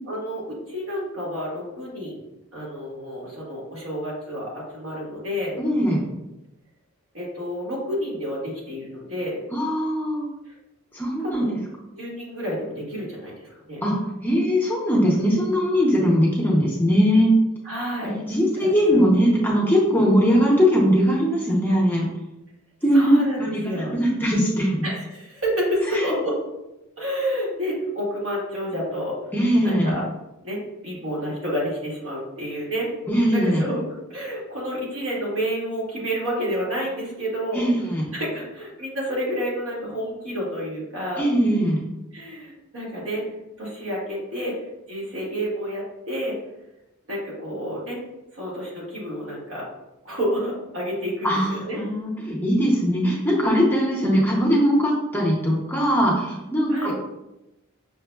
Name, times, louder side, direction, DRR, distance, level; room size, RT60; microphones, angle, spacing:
voice 1, 0.0-2.2 2.5-5.6 7.1-9.4 10.5-10.6 11.2-11.6 11.9-13.8 17.6-18.1 18.6-19.0 22.9-23.9 24.8-26.4 27.0-29.2 29.6-30.0 30.4-32.9 33.3-33.8 34.1-37.7 38.1-41.2 42.1-43.3 43.6-44.5 44.9-46.3 47.1-48.0 48.3-49.7 50.0-51.8 56.7-56.9, equal, 75° right, -5 dB, 1.3 m, -29 dB
voice 2, 5.6-6.0 9.5-10.3 10.9-11.6 13.8-14.0 14.2-17.3 18.0-22.1 22.8-24.8 25.9-26.1 29.3-29.9 33.1-33.6 37.5-38.1 41.2-41.8 51.2-56.9, equal, 10° left, -3 dB, 0.6 m, -20 dB
5.8 x 2.0 x 2.2 m, 0.95 s
head